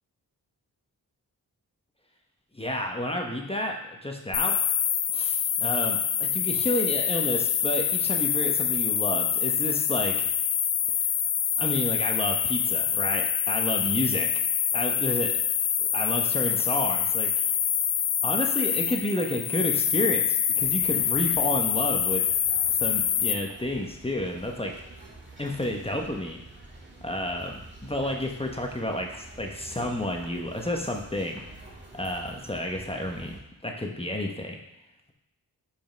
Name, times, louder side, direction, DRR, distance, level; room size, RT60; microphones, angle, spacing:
voice 1, 2.5-4.6 5.1-10.3 10.9-11.0 11.6-14.4 14.7-15.3 15.8-17.5 18.2-22.2 22.8-24.7 25.4-26.4 27.0-31.4 31.9-33.4 33.6-34.6, left 1 dB, 15° left, 2 dB, 1.2 m, -30 dB
sound 1, 4.3-23.3, left 8 dB, 85° left, 0.6 m, -26 dB
sound 2, 20.6-33.4, right 2 dB, 30° right, 1.8 m, -47 dB
5.3 x 5.2 x 4.6 m, 0.87 s
cardioid pair, 45°, 39 cm